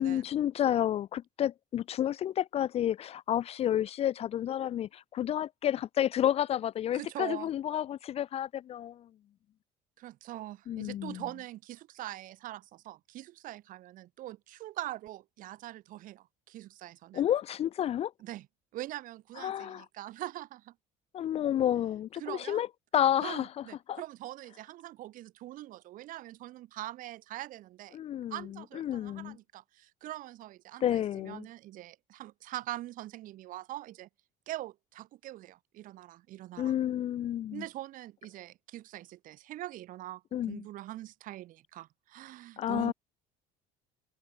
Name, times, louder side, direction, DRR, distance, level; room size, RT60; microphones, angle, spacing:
voice 1, 0.0-9.1 10.7-11.2 17.1-18.1 19.4-19.8 21.1-22.7 22.9-23.5 23.9-24.0 27.9-28.4 28.7-29.4 30.8-31.5 36.6-37.6 40.3-40.6 42.6-42.9, left 11 dB, 40° left, 0.5 m, -30 dB
voice 2, 6.9-7.5 10.0-17.2 18.2-18.5 18.7-20.7 22.2-22.6 23.2-28.0 28.3-34.1 34.5-36.7 37.5-42.9, right 15 dB, 55° right, 1.4 m, -43 dB
cardioid pair, 140°, 16 cm